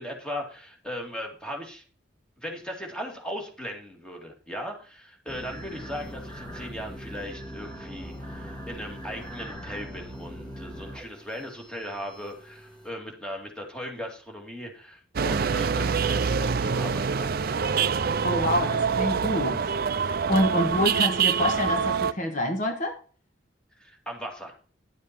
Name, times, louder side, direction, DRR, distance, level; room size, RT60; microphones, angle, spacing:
voice 1, 0.0-1.8 2.4-17.5 23.8-24.5, equal, 5° left, 1 dB, 2.4 m, -38 dB
sound 1, 5.3-12.9, equal, 20° left, 3.1 m, -41 dB
sound 2, 15.2-22.1, right 6 dB, 50° right, 0.5 m, -25 dB
voice 2, 18.2-19.7 20.0-22.9, left 1 dB, 40° left, 4 dB, 1.4 m, -27 dB
11.0 x 7.3 x 4.6 m, 0.40 s
head